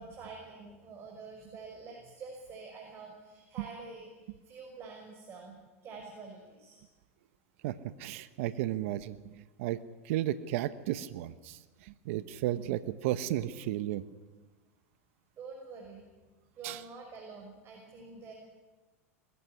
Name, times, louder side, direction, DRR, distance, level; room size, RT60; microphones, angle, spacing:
voice 1, 0.0-5.6 5.8-6.8 15.4-16.0 16.6-18.3, right 4 dB, 35° right, 0 dB, 6.2 m, -47 dB
voice 2, 7.6-9.3 9.6-9.8 10.0-14.0 16.6-16.8, right 13 dB, 65° right, 14 dB, 1.1 m, -34 dB
21.5 x 15.5 x 9.8 m, 1.2 s
hypercardioid pair, 100°, 8 cm